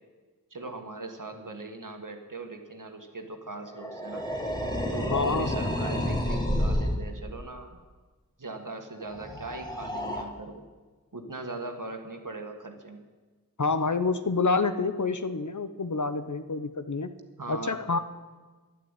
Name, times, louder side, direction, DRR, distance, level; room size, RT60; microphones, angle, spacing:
voice 1, 0.5-4.3 4.9-7.8 8.4-10.6 11.1-13.1 17.4-17.8, right 2 dB, 60° right, 4 dB, 1.8 m, -39 dB
sound 1, 3.7-7.0 9.1-10.2, equal, 10° left, 2.2 m, -30 dB
voice 2, 5.1-5.5 13.6-17.1 17.5-18.0, left 4 dB, 55° left, 11 dB, 0.9 m, -27 dB
11.5 x 11.5 x 9.1 m, 1.3 s
wide cardioid pair, 45°, 36 cm